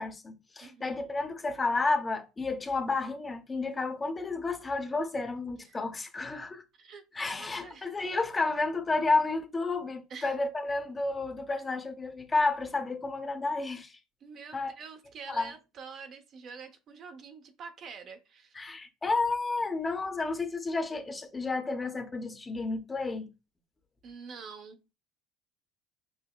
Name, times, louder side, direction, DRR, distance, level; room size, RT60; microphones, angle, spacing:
voice 1, 0.0-6.6 7.1-14.0 14.5-14.7 15.3-15.5 18.5-23.3, left 3 dB, 25° left, 0.7 m, -31 dB
voice 2, 0.6-1.0 5.6-5.8 6.8-7.9 10.1-10.3 14.2-18.6 24.0-24.8, right 5 dB, 50° right, 0.6 m, -46 dB
5.5 x 2.1 x 2.3 m
hypercardioid pair, 80°, 0 cm